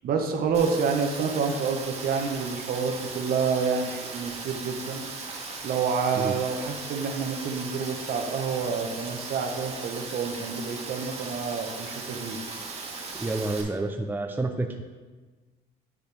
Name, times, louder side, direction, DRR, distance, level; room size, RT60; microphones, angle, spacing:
voice 1, 0.0-5.1 5.6-12.4, right 5 dB, 60° right, 4 dB, 1.0 m, -28 dB
Rain, 0.5-13.6, right 4 dB, 40° right, 1.6 m, -38 dB
voice 2, 13.2-14.8, right 2 dB, 10° right, 3 dB, 0.5 m, -29 dB
10.5 x 5.1 x 3.4 m, 1.3 s
cardioid pair, 110°, 17 cm